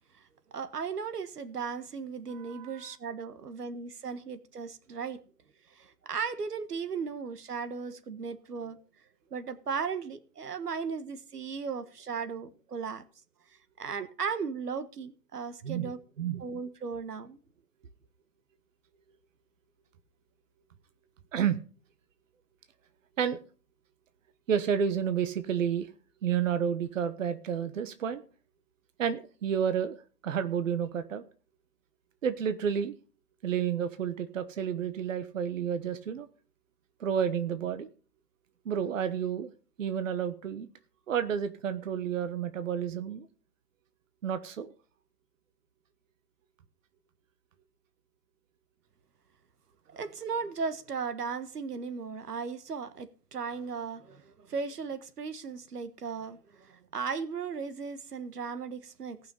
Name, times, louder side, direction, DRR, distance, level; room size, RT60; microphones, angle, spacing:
voice 1, 0.5-5.2 5.7-8.8 9.3-13.0 13.8-16.0 16.4-17.4 49.9-59.2, right 5 dB, 75° right, 1.5 m, -36 dB
voice 2, 2.3-2.7 15.6-16.4 21.3-21.6 23.2-23.4 24.5-25.9 26.2-28.2 29.0-30.0 30.2-31.2 32.2-32.9 33.4-36.3 37.0-37.9 38.6-39.5 39.8-40.7 41.1-43.3 44.2-44.7, right 8 dB, 55° right, 1.3 m, -30 dB
18.0 x 6.3 x 5.5 m
hypercardioid pair, 140°, 47 cm